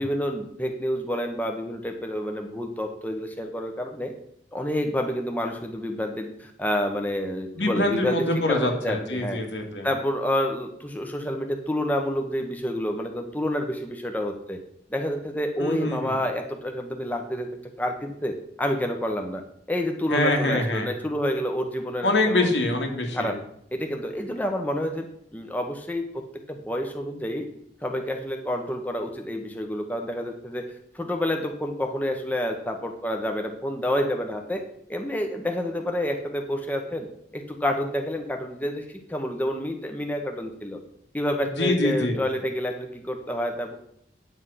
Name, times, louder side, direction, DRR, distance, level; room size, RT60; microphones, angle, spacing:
voice 1, 0.0-4.1 4.5-8.2 8.5-9.4 9.8-14.6 14.9-17.5 17.8-19.4 19.7-22.5 23.1-23.3 23.7-25.1 25.3-26.2 26.5-27.4 27.8-30.7 30.9-34.6 34.9-37.1 37.3-40.8 41.1-43.8, equal, 10° left, 3 dB, 1.1 m, -28 dB
voice 2, 7.6-9.9 15.6-16.1 20.1-20.9 22.0-23.3 41.6-42.2, left 2 dB, 85° left, 2 dB, 2.5 m, -24 dB
9.8 x 7.4 x 5.8 m, 0.70 s
head